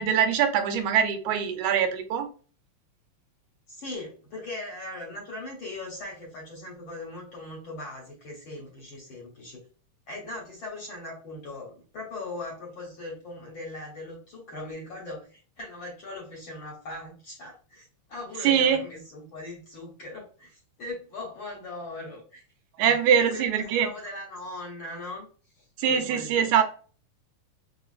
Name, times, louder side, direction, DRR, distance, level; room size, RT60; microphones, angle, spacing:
voice 1, 0.0-2.3 18.4-18.8 22.8-23.9 25.8-26.6, right 8 dB, 90° right, 7 dB, 2.0 m, -23 dB
voice 2, 3.7-9.6 10.1-22.4 22.9-23.0 23.3-25.2 25.6-26.4, left 2 dB, 60° left, -3 dB, 1.4 m, -39 dB
5.0 x 2.5 x 2.4 m, 0.39 s
omnidirectional pair, 3.3 m